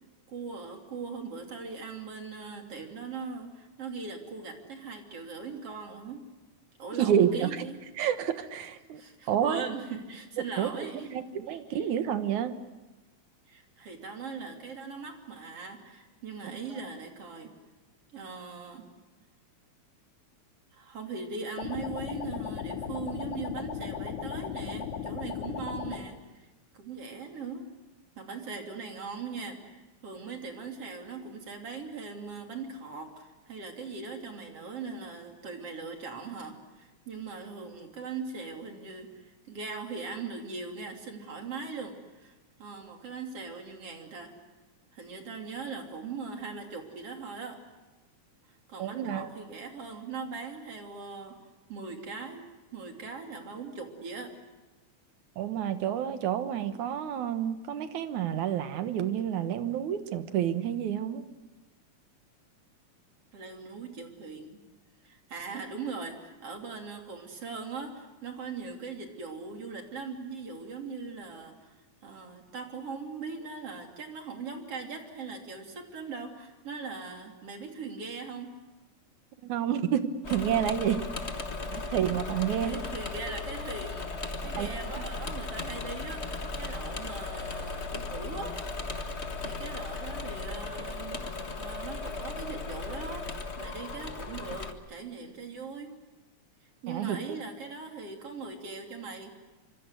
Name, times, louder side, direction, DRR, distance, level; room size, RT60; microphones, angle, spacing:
voice 1, 0.3-6.2 6.8-7.8 8.9-11.9 13.5-17.5 18.1-18.8 20.7-26.5 26.7-27.7 28.2-42.3 42.6-44.3 44.9-47.6 48.7-51.4 51.7-54.3 63.3-64.6 65.0-71.7 72.0-78.5 81.6-81.8 82.6-88.6 89.4-91.2 91.6-96.0 96.8-99.4, right 4 dB, 50° right, 3 dB, 3.9 m, -40 dB
voice 2, 7.0-7.7 8.0-9.0 9.3-9.7 10.6-12.6 48.8-49.3 55.4-61.2 79.4-81.0 81.7-82.9 84.5-85.0 96.9-97.2, right 9 dB, 80° right, 9 dB, 2.8 m, -29 dB
sound 1, 21.6-26.0, left 7 dB, 90° left, 3.4 m, -36 dB
Engine / Mechanisms, 80.2-94.7, left 3 dB, 30° left, 1.2 m, -36 dB
26.5 x 25.0 x 8.1 m, 1.2 s
omnidirectional pair, 3.4 m